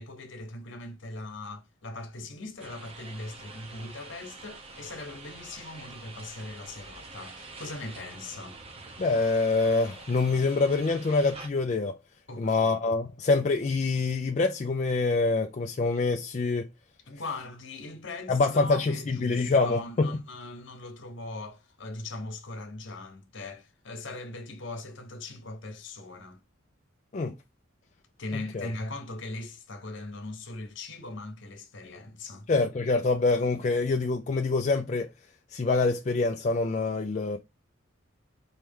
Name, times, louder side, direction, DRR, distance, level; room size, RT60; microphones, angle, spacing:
voice 1, 0.0-8.6 12.3-12.8 17.1-26.4 28.2-32.5, left 2 dB, 60° left, 1.0 m, -40 dB
sound 1, 2.6-11.5, right 3 dB, 25° right, 0.7 m, -46 dB
voice 2, 9.0-12.0 12.4-16.7 18.3-20.1 27.1-27.3 28.5-28.7 32.5-35.1 35.5-37.4, left 3 dB, 35° left, 0.3 m, -25 dB
4.3 x 3.2 x 3.5 m
head